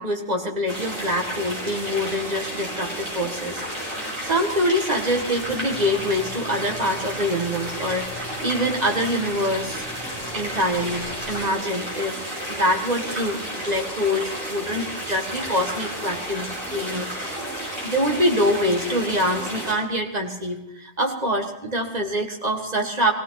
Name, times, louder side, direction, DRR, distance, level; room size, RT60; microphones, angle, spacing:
voice 1, 0.0-3.6 4.2-8.1 8.4-9.8 10.3-12.2 12.5-17.1 17.8-23.1, equal, 35° right, 2 dB, 2.0 m, -25 dB
sound 1, 0.7-19.7, equal, 50° right, 6.9 m, -32 dB
sound 2, 5.3-11.5, left 2 dB, 5° right, 2.9 m, -41 dB
19.5 x 17.0 x 4.1 m, 0.87 s
omnidirectional pair, 1.2 m